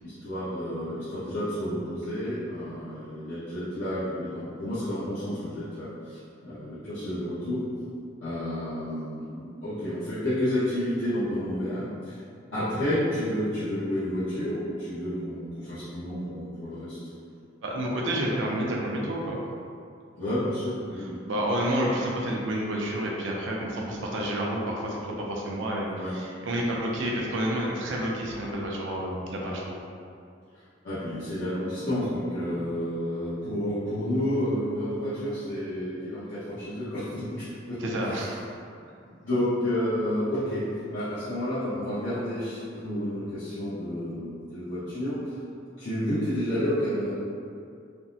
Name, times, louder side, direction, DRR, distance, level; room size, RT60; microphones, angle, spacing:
voice 1, 0.0-7.6 8.2-12.2 12.5-17.0 20.2-21.2 26.0-26.1 30.8-37.8 38.0-38.1 39.0-45.2 45.8-47.2, left 1 dB, 80° left, -14 dB, 0.8 m, -30 dB
voice 2, 17.6-19.4 21.3-29.8 37.8-38.4, right 1 dB, 85° right, -2 dB, 0.5 m, -29 dB
3.4 x 2.0 x 2.7 m, 2.4 s
head